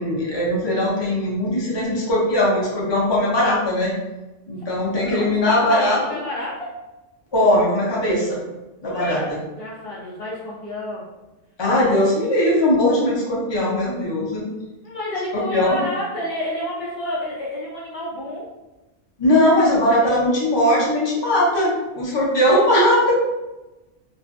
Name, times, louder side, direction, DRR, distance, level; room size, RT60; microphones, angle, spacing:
voice 1, 0.0-3.9 4.5-6.0 7.3-8.4 8.8-9.2 11.6-14.4 15.3-15.8 19.2-23.1, left 1 dB, 30° left, -5 dB, 0.6 m, -19 dB
voice 2, 4.8-6.7 8.8-11.1 11.8-11.9 14.8-18.5, left 1 dB, 65° left, -6 dB, 0.7 m, -30 dB
2.5 x 2.1 x 2.4 m, 1.0 s
omnidirectional pair, 1.3 m